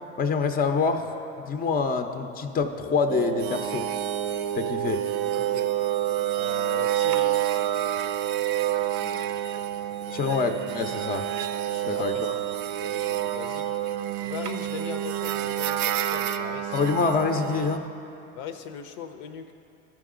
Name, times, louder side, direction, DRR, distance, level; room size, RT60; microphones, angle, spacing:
voice 1, 0.2-1.1 1.4-3.9 4.5-5.0 10.1-11.3 11.9-12.3 16.7-17.9, left 5 dB, 25° left, 7 dB, 0.6 m, -26 dB
sound 1, 3.1-17.8, right 12 dB, 65° right, 0.5 m, -28 dB
voice 2, 5.3-5.8 6.3-7.5 8.7-9.4 10.0-10.4 11.7-12.5 12.8-13.7 14.2-16.9 18.3-19.5, left 7 dB, 70° left, 8 dB, 0.7 m, -40 dB
13.5 x 6.0 x 3.8 m, 2.8 s
hypercardioid pair, 80°, 35 cm